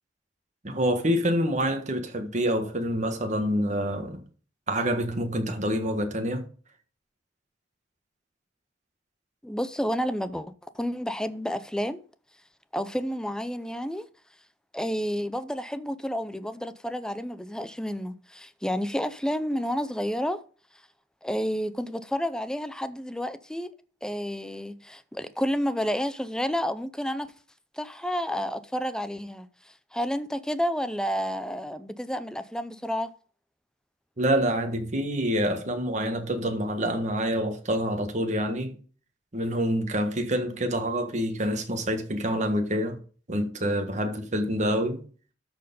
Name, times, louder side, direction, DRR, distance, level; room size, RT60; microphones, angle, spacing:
voice 1, 0.6-4.2 4.7-6.4 34.2-38.8 39.3-43.0 43.3-45.0, equal, 40° right, 1.6 m, -27 dB
voice 2, 9.4-12.0 12.7-14.1 14.7-20.4 21.2-23.7 24.0-27.3 27.7-29.5 29.9-33.1, equal, 5° left, 0.5 m, -30 dB
13.0 x 4.4 x 5.3 m
head